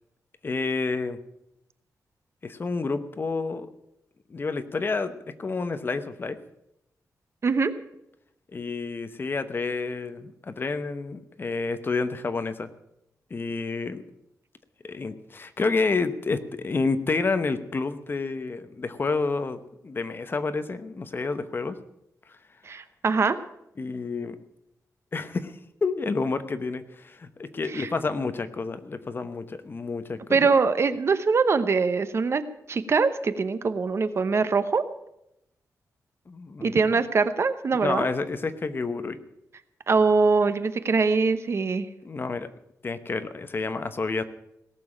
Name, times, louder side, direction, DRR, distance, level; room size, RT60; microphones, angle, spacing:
voice 1, 0.4-1.2 2.4-3.7 4.3-6.4 8.5-12.7 13.3-14.0 14.8-21.8 22.3-22.4 23.8-24.4 25.1-30.5 36.3-37.0 37.8-39.2 42.0-42.5 42.8-44.2, left 4 dB, 35° left, 11 dB, 0.9 m, -29 dB
voice 2, 7.4-7.7 22.6-23.4 27.7-27.9 30.3-32.4 32.7-34.8 36.6-38.1 39.9-41.9, right 4 dB, 45° right, 12 dB, 0.9 m, -23 dB
18.0 x 7.0 x 8.7 m, 0.82 s
wide cardioid pair, 130°, 6 cm